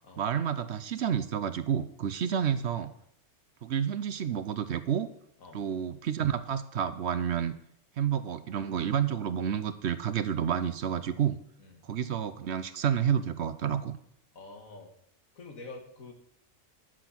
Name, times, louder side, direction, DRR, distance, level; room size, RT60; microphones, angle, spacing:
voice 1, 0.2-2.9 3.6-5.1 5.5-7.5 8.0-11.4 11.8-14.0, right 8 dB, 60° right, 12 dB, 0.9 m, -30 dB
voice 2, 2.3-2.9 5.4-5.6 11.6-11.8 14.3-14.9 15.3-16.1, left 3 dB, 85° left, 2 dB, 2.3 m, -47 dB
11.5 x 7.6 x 5.8 m, 0.71 s
omnidirectional pair, 1.4 m